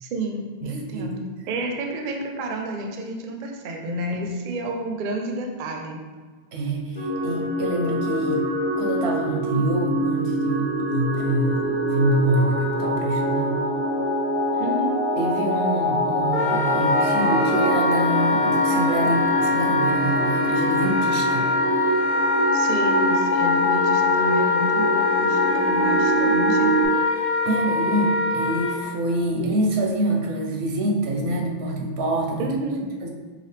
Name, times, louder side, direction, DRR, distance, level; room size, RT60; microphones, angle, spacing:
voice 1, 0.0-6.0 14.6-14.9 22.5-26.7 32.4-32.9, right 1 dB, 60° right, 2 dB, 0.6 m, -30 dB
voice 2, 0.6-1.1 6.5-8.5 8.8-13.6 15.2-21.5 26.4-26.8 27.4-32.5 33.0-33.1, right 1 dB, 80° right, 1 dB, 0.9 m, -26 dB
sound 1, 7.0-26.9, right 1 dB, 30° left, 0.8 m, -24 dB
Wind instrument woodwind instrument, 16.3-28.8, left 3 dB, 70° left, 1.0 m, -23 dB
4.8 x 2.5 x 3.2 m, 1.4 s
omnidirectional pair, 1.1 m